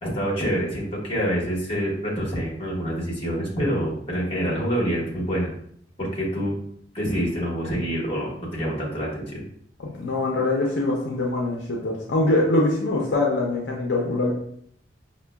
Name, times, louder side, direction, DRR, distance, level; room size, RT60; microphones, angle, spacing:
voice 1, 0.0-5.5 6.0-6.5 6.9-9.4, equal, 30° left, -4 dB, 1.3 m, -26 dB
voice 2, 9.8-14.3, left 2 dB, 75° left, -1 dB, 0.6 m, -23 dB
5.4 x 2.2 x 2.2 m, 0.66 s
head